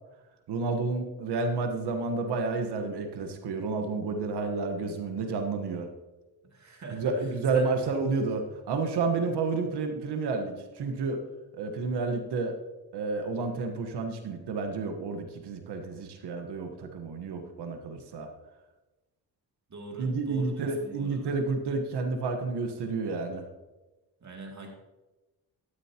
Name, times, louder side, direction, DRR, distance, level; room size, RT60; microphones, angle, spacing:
voice 1, 0.5-5.9 6.9-11.2 11.5-12.6 12.9-18.3 20.0-23.5, right 4 dB, 80° right, 5 dB, 1.3 m, -30 dB
voice 2, 6.4-7.1 7.5-7.7 19.7-21.3 24.2-24.7, right 2 dB, 45° right, 1 dB, 2.5 m, -41 dB
13.0 x 9.2 x 2.9 m, 1.1 s
cardioid pair, 65°, 39 cm